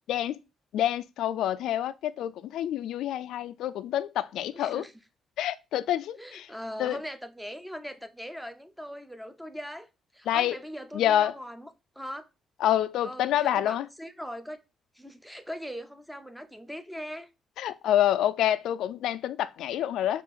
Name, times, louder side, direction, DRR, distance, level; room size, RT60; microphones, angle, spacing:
voice 1, 0.1-0.4 0.7-4.8 5.4-6.5 6.8-7.0 10.3-10.6 10.9-11.3 12.6-13.8 17.6-20.2, left 11 dB, 80° left, 0.3 m, -27 dB
voice 2, 4.5-4.9 6.2-9.9 10.1-11.7 11.9-12.3 13.0-14.6 14.9-17.3, equal, ahead, 0.7 m, -40 dB
5.9 x 2.5 x 3.6 m
cardioid pair, 90°, 0 cm